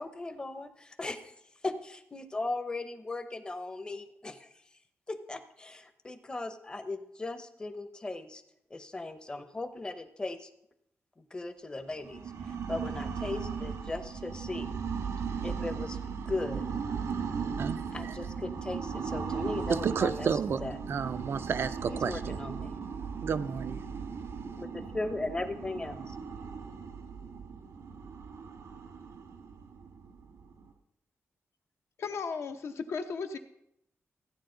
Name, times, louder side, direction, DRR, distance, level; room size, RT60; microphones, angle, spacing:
voice 1, 0.0-1.3 1.6-4.5 5.1-8.4 8.7-10.5 11.2-14.8 15.4-16.6 17.9-20.8 21.9-22.8 24.6-26.2, left 2 dB, 15° left, 0.7 m, -38 dB
sound 1, 12.0-30.7, right 6 dB, 85° right, 1.5 m, -37 dB
voice 2, 17.6-18.1 19.7-20.6 20.9-22.4 23.2-23.8, right 6 dB, 50° right, 0.4 m, -31 dB
voice 3, 32.0-33.4, left 5 dB, 60° left, 0.8 m, -35 dB
15.0 x 9.5 x 3.8 m
wide cardioid pair, 175°, 5 cm